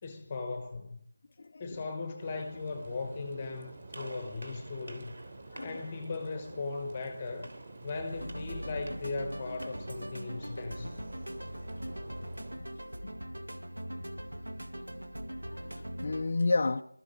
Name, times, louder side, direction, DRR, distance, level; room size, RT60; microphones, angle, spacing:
voice 1, 0.0-1.0 1.6-5.1 5.6-7.5 7.8-11.0, left 3 dB, 15° left, 1.1 m, -38 dB
voice 2, 1.4-1.8 5.5-5.8 11.4-11.5 12.6-12.7 13.0-13.1 15.5-16.8, left 3 dB, 30° left, 0.5 m, -32 dB
sound 1, 2.2-12.6, right 3 dB, 30° right, 3.2 m, -50 dB
Gunshot gunfire, 3.9-9.9, right 1 dB, 55° right, 3.1 m, -52 dB
sound 2, 8.1-16.2, equal, 90° right, 2.1 m, -41 dB
21.5 x 13.0 x 5.0 m
figure-of-eight pair, 175°, 0 cm